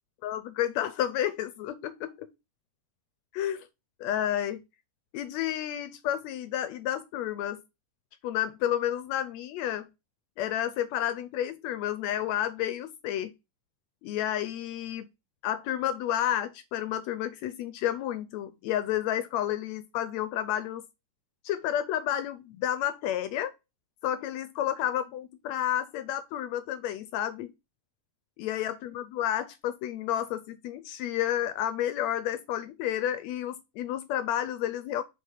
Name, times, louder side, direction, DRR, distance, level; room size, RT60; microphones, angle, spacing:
voice 1, 0.2-2.3 3.3-3.7 4.0-4.6 5.1-7.6 8.2-9.9 10.4-13.3 14.0-15.1 15.4-20.8 21.4-23.5 24.0-27.5 28.4-35.0, left 11 dB, 80° left, 1.6 m, -31 dB
5.0 x 3.9 x 5.6 m
omnidirectional pair, 3.5 m